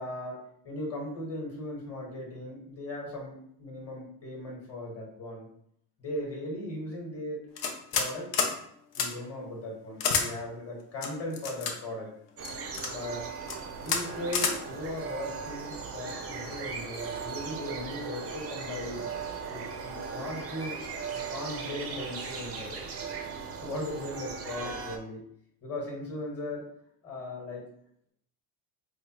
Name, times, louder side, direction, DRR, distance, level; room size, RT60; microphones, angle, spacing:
voice 1, 0.0-5.5 6.0-7.5 7.9-8.3 9.0-12.1 12.8-13.3 13.8-19.0 19.5-20.8 21.1-22.8 23.5-25.2 25.6-26.7 27.0-27.7, left 1 dB, 35° left, -2 dB, 1.2 m, -38 dB
sound 1, 7.6-8.1 8.3-8.5 8.9-9.1 10.0-10.3 11.0-11.7 12.4-12.9 13.4-13.6 13.9-14.0 14.3-14.5, left 5 dB, 50° left, 0.6 m, -28 dB
sound 2, 12.4-25.0, right 5 dB, 35° right, 0.4 m, -38 dB
4.7 x 2.2 x 2.8 m, 0.69 s
cardioid pair, 145°, 44 cm